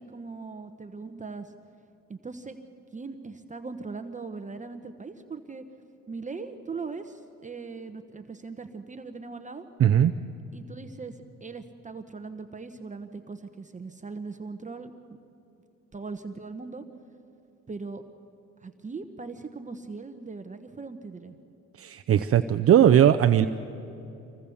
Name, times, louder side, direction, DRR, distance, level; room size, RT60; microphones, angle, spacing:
voice 1, 0.0-1.5 2.1-2.6 2.9-5.6 6.1-9.7 10.5-15.2 15.9-16.8 17.7-18.0 18.6-21.3, right 4 dB, 25° right, 7 dB, 1.0 m, -39 dB
voice 2, 9.8-10.1 21.8-23.5, right 10 dB, 50° right, 8 dB, 0.6 m, -19 dB
25.0 x 16.5 x 7.1 m, 2.8 s
cardioid pair, 90°, 30 cm